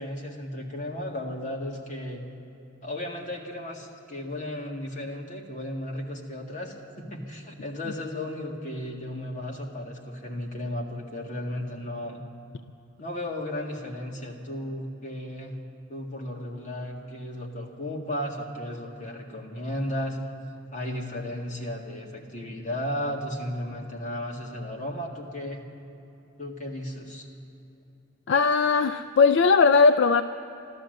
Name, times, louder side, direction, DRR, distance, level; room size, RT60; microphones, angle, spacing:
voice 1, 0.0-2.2 2.8-12.2 13.0-15.6 15.9-20.2 20.7-25.7 26.4-27.3, left 1 dB, 35° left, -2 dB, 1.9 m, -34 dB
voice 2, 28.3-30.2, left 4 dB, 60° left, 10 dB, 0.3 m, -19 dB
14.0 x 12.5 x 7.8 m, 2.9 s
head